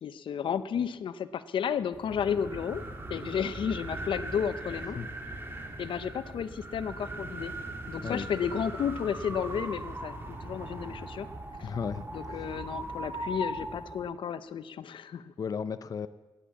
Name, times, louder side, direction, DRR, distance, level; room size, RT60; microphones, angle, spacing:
voice 1, 0.0-2.8 3.1-5.0 5.8-7.5 7.9-11.3 11.6-11.7 12.1-15.3, left 7 dB, 85° left, 14 dB, 0.7 m, -32 dB
sound 1, 1.9-14.1, right 1 dB, 25° right, 1.9 m, -39 dB
voice 2, 11.6-12.0 12.3-12.6 15.4-16.1, left 6 dB, 45° left, 13 dB, 0.5 m, -34 dB
17.0 x 10.0 x 7.1 m, 1.1 s
wide cardioid pair, 135°, 8 cm